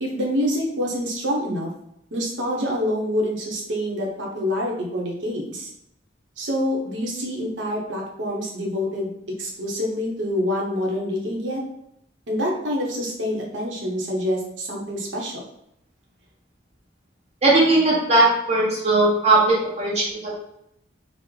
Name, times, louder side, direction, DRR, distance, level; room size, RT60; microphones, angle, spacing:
voice 1, 0.0-1.7 2.1-5.7 6.4-9.1 9.4-11.6 12.3-15.4, equal, 75° right, -1 dB, 0.8 m, -26 dB
voice 2, 17.4-20.4, right 2 dB, 35° right, -4 dB, 1.0 m, -18 dB
3.1 x 2.0 x 3.7 m, 0.76 s
head